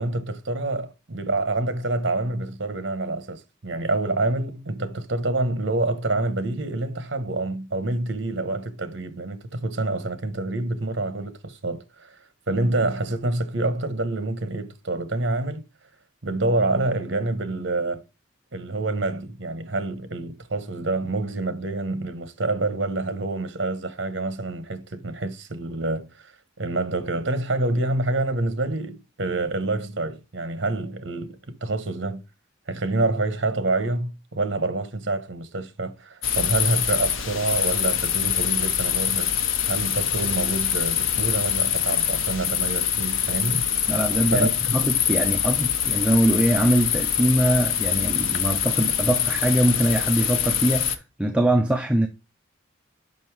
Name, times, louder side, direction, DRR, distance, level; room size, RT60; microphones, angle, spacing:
voice 1, 0.0-12.2 12.5-15.6 16.2-18.0 18.5-26.3 26.6-32.2 32.7-39.3 39.7-43.7 44.3-44.5, right 2 dB, 60° right, 1.0 m, -27 dB
sound 1, 36.2-51.0, left 9 dB, 85° left, 0.8 m, -24 dB
voice 2, 43.9-52.1, right 1 dB, 5° right, 0.5 m, -22 dB
5.5 x 5.4 x 4.6 m
head